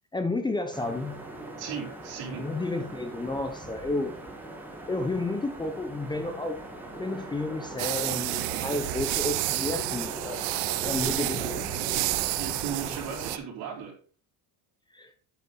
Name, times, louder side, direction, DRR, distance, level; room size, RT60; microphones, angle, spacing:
voice 1, 0.1-1.2 2.3-4.1 4.9-6.6 7.0-10.5 10.8-11.7 14.9-15.1, left 2 dB, 10° left, 7 dB, 0.8 m, -31 dB
sound 1, 0.7-13.4, right 1 dB, 5° right, 1.7 m, -40 dB
voice 2, 1.6-2.5 11.0-11.2 12.4-13.9, right 7 dB, 65° right, -2 dB, 4.5 m, -36 dB
sound 2, 7.8-13.4, right 18 dB, 90° right, 0.7 m, -30 dB
9.3 x 6.5 x 4.0 m, 0.41 s
cardioid pair, 140°, 39 cm